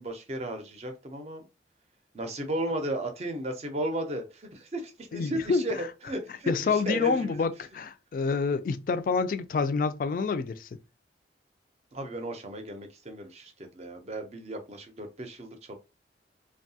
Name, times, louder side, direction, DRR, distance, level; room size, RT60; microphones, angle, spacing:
voice 1, 0.0-1.5 2.1-5.7 6.1-7.5 11.9-15.7, right 1 dB, 35° right, 0.5 m, -35 dB
voice 2, 5.1-5.8 6.5-10.7, left 4 dB, 50° left, 0.3 m, -27 dB
2.7 x 2.2 x 2.7 m
head